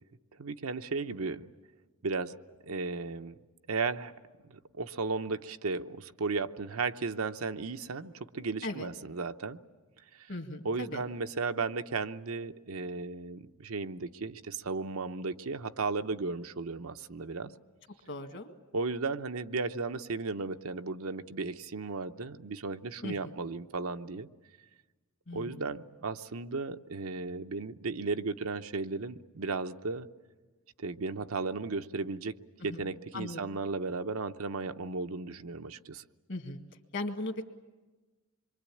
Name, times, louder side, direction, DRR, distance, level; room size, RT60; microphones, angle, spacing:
voice 1, 0.4-1.5 2.0-2.3 2.6-3.3 3.7-4.1 4.4-9.6 10.1-10.3 10.6-17.5 18.7-24.3 25.3-30.1 30.8-32.4 32.6-36.0, right 4 dB, 75° right, 0.8 m, -35 dB
voice 2, 10.3-11.0 17.4-17.6 18.1-18.5 23.0-23.4 25.3-25.7 32.7-32.9 33.1-33.4 36.3-36.6 36.9-37.5, left 2 dB, 55° left, 1.9 m, -38 dB
26.5 x 23.5 x 8.5 m
head